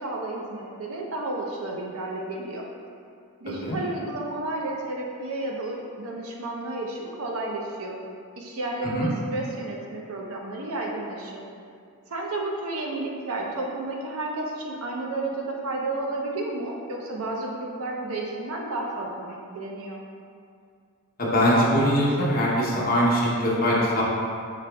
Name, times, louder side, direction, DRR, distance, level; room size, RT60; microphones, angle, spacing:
voice 1, 0.0-2.6 3.4-8.0 8.4-11.4 12.1-20.0, right 2 dB, 75° right, -1 dB, 0.6 m, -32 dB
voice 2, 21.2-24.0, equal, 40° left, -5 dB, 0.8 m, -22 dB
4.9 x 3.9 x 2.2 m, 2.3 s
head